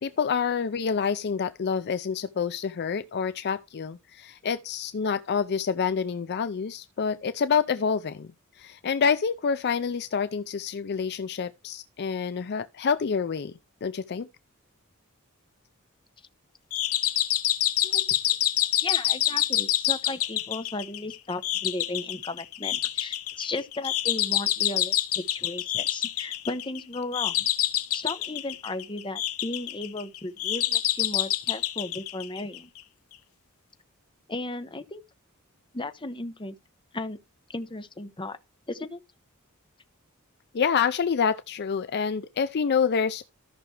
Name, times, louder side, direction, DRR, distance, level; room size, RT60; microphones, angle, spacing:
voice 1, 0.0-13.5 13.8-14.3 17.8-18.2 40.5-43.2, left 6 dB, 50° left, 0.4 m, -27 dB
sound 1, 16.7-32.8, left 13 dB, 80° left, 1.0 m, -27 dB
voice 2, 18.8-27.5 27.9-32.7 34.3-35.0 35.7-36.6 36.9-37.2 37.5-38.4 38.7-39.0, left 2 dB, 25° left, 0.9 m, -35 dB
14.0 x 6.0 x 3.3 m
head